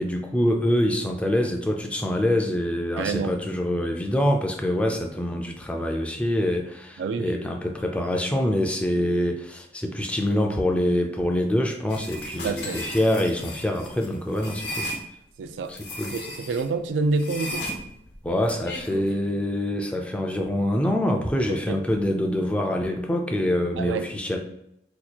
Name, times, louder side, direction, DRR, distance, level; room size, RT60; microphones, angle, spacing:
voice 1, 0.0-14.9 15.7-16.1 18.2-24.4, left 1 dB, 5° left, 3 dB, 0.3 m, -25 dB
voice 2, 3.0-3.4 7.0-7.4 12.4-12.8 15.4-15.7 16.1-17.6 21.7-21.8 23.8-24.1, right 4 dB, 90° right, 10 dB, 0.3 m, -27 dB
sound 1, 11.9-15.0 15.7-16.7 17.1-19.1, left 1 dB, 65° left, 0.9 m, -35 dB
2.8 x 2.3 x 4.2 m, 0.79 s
head